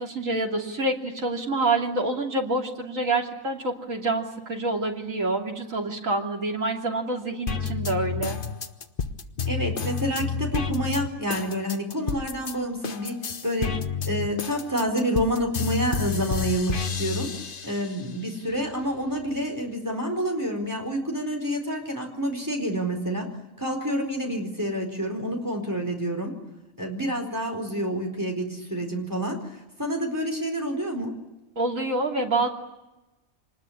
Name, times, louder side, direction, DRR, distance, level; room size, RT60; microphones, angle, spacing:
voice 1, 0.0-8.4 31.5-32.5, right 2 dB, 75° right, 1 dB, 3.4 m, -27 dB
sound 1, 7.5-12.5 12.8-18.0 18.5-19.5, left 6 dB, 40° left, 1.2 m, -30 dB
voice 2, 9.5-13.8 14.1-17.3 17.6-23.3 23.6-26.4 26.8-29.4 29.8-31.1, equal, 15° right, 2 dB, 4.5 m, -28 dB
25.5 x 20.5 x 10.0 m, 1.0 s
omnidirectional pair, 1.4 m